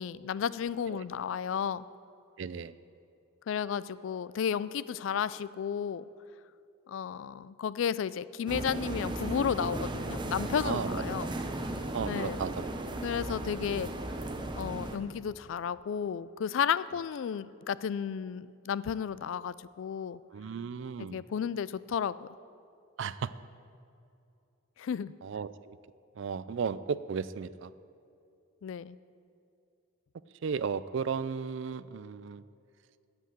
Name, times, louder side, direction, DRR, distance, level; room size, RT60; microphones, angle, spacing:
voice 1, 0.0-1.9 3.5-6.0 6.9-11.3 12.1-12.5 13.0-13.9 14.5-20.2 21.0-22.3 24.8-25.1 28.6-29.0, left 7 dB, 65° left, 18 dB, 0.3 m, -33 dB
voice 2, 2.4-2.7 10.6-11.3 11.9-12.7 20.3-21.2 23.0-23.3 25.2-25.8 26.2-27.7 30.4-32.4, right 6 dB, 60° right, 16 dB, 0.3 m, -35 dB
sound 1, 8.5-15.0, right 1 dB, 20° right, 0.6 m, -36 dB
8.3 x 7.9 x 8.9 m, 2.5 s
head